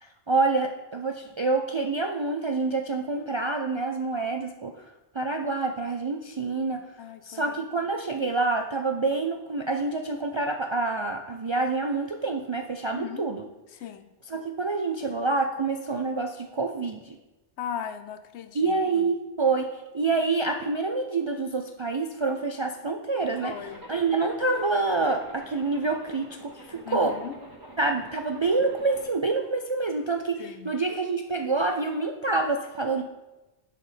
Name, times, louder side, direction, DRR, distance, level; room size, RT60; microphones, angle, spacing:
voice 1, 0.0-4.9 5.1-6.8 7.3-13.4 14.3-17.2 18.5-23.5 23.9-27.1 27.8-33.0, right 3 dB, 50° right, 4 dB, 0.3 m, -27 dB
voice 2, 7.0-7.6 12.9-13.3 13.7-14.1 17.6-19.1 23.4-23.8 26.8-27.4 30.4-30.7, left 8 dB, 80° left, 10 dB, 0.9 m, -38 dB
Zipper (clothing), 23.1-29.1, right 1 dB, 20° right, 1.5 m, -47 dB
10.0 x 4.2 x 5.1 m, 1.0 s
omnidirectional pair, 1.1 m